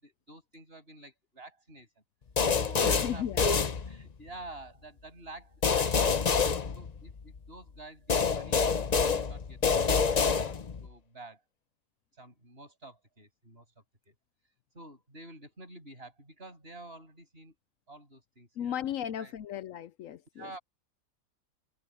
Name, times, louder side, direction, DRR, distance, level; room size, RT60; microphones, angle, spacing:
voice 1, 0.0-1.9 2.6-3.6 3.9-6.3 6.7-9.6 9.9-11.4 12.2-14.1 14.7-17.5 17.9-19.3 20.4-20.6, right 2 dB, 40° right, 7.5 m, -49 dB
sound 1, 2.4-4.3 5.6-7.4 8.1-10.9, left 5 dB, 35° left, 0.7 m, -27 dB
voice 2, 2.8-3.5 18.6-20.6, left 10 dB, 70° left, 1.0 m, -36 dB
omnidirectional pair, 1.5 m